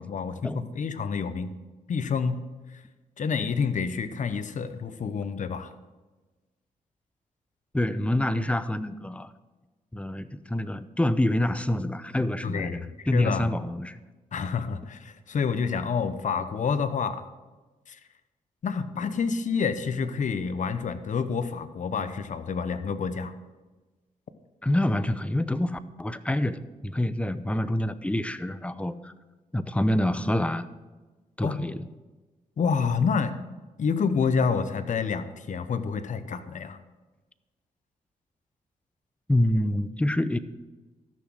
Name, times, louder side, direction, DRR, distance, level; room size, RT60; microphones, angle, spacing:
voice 1, 0.0-1.5 1.9-2.4 2.7-2.8 3.2-5.7 12.4-13.5 14.3-17.2 17.9-18.0 18.6-23.3 31.4-31.7 32.6-33.4 33.8-36.8, left 5 dB, 55° left, 11 dB, 0.9 m, -28 dB
voice 2, 7.7-9.3 9.9-14.0 24.6-29.1 29.5-30.7 31.4-31.9 39.3-40.4, left 1 dB, 10° left, 13 dB, 0.7 m, -27 dB
14.0 x 6.2 x 6.3 m, 1.2 s
cardioid pair, 65°, 15 cm